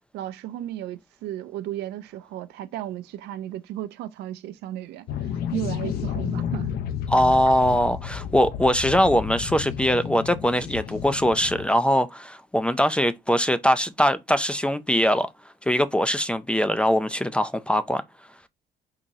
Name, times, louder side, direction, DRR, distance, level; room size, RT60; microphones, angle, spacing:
voice 1, 0.1-5.1 5.5-6.7, right 12 dB, 80° right, 0.5 m, -34 dB
sound 1, 5.1-11.7, left 8 dB, 65° left, 0.5 m, -31 dB
voice 2, 7.1-15.3 15.7-18.0, equal, 5° left, 0.3 m, -22 dB
3.7 x 2.9 x 2.7 m
cardioid pair, 110°, 17 cm